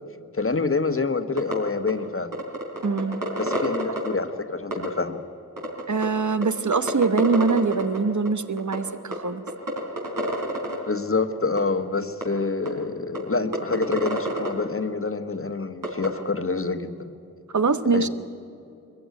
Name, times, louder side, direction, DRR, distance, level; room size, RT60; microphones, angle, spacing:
voice 1, 0.3-2.3 3.4-5.2 10.6-17.1 17.8-18.1, left 4 dB, 40° left, 9 dB, 1.4 m, -27 dB
sound 1, 1.4-1.5 1.9-2.0 2.3-4.1 4.7-4.9 5.6-6.0 6.4-6.5 6.7-8.0 8.2-8.3 8.6-8.8 9.1-9.2 9.5-10.7 11.6-11.7 12.2-12.3 12.6-12.7 13.1-13.2 13.5-14.5 15.8-16.1, right 1 dB, 80° right, 3.7 m, -27 dB
voice 2, 2.8-3.2 5.9-9.4 17.5-18.1, right 4 dB, 60° right, 12 dB, 1.1 m, -23 dB
22.5 x 15.0 x 9.4 m, 2.7 s
wide cardioid pair, 50°, 33 cm